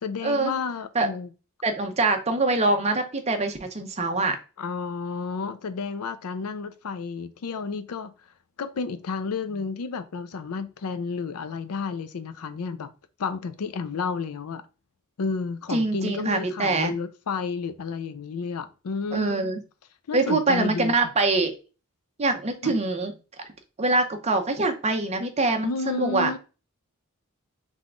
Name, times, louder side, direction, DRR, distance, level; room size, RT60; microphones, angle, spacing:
voice 1, 0.0-1.3 4.6-8.1 8.6-12.9 13.2-14.6 15.2-19.5 20.1-21.1 22.6-22.7 25.6-26.4, left 5 dB, 85° left, 0.5 m, -31 dB
voice 2, 1.6-4.4 15.7-16.9 19.1-19.6 20.1-21.5 22.2-23.1 23.8-26.3, right 3 dB, 30° right, 0.7 m, -24 dB
3.6 x 3.4 x 3.7 m
head